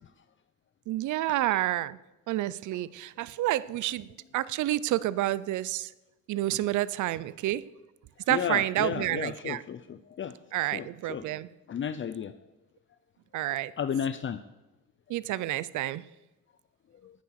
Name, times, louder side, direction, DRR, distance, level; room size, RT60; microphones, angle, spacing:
voice 1, 0.9-2.0 2.3-5.9 6.3-7.6 8.3-9.6 10.5-11.5 13.3-13.7 15.1-16.0, right 15 dB, 75° right, 20 dB, 0.5 m, -29 dB
voice 2, 8.3-10.3 10.7-11.3 11.7-12.3 13.8-14.4 17.0-17.1, left 8 dB, 40° left, 12 dB, 0.6 m, -33 dB
10.5 x 9.3 x 6.5 m, 1.0 s
cardioid pair, 90°, 30 cm